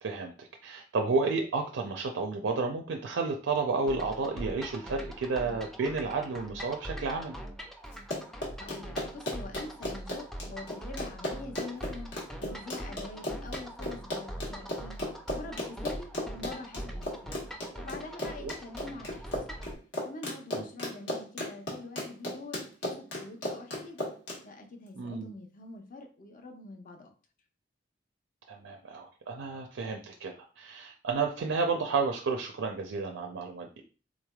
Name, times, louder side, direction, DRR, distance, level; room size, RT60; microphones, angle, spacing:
voice 1, 0.0-7.4 18.4-18.5 20.5-20.6 25.0-25.3 28.5-33.7, right 4 dB, 80° right, 2 dB, 0.4 m, -31 dB
sound 1, 3.9-19.7, right 1 dB, ahead, 0.4 m, -42 dB
Run, 7.9-24.4, left 1 dB, 70° left, 1.2 m, -35 dB
voice 2, 8.6-12.1 12.4-15.0 15.3-17.4 17.7-19.6 20.0-24.0 24.4-27.1, left 3 dB, 45° left, 4 dB, 0.6 m, -45 dB
3.7 x 3.2 x 2.3 m, 0.36 s
head